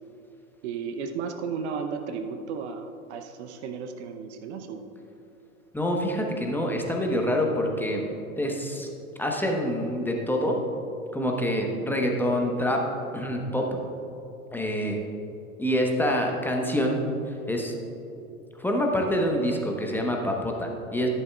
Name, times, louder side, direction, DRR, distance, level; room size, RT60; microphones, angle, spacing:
voice 1, 0.6-4.9, right 5 dB, 55° right, 7 dB, 0.8 m, -34 dB
voice 2, 5.7-8.0 8.4-8.9 9.2-10.6 11.1-12.8 13.1-13.8 14.5-15.0 15.6-17.7 18.6-21.1, equal, 5° left, 0 dB, 1.1 m, -26 dB
13.0 x 11.0 x 2.4 m, 2.9 s
figure-of-eight pair, 90°, 42 cm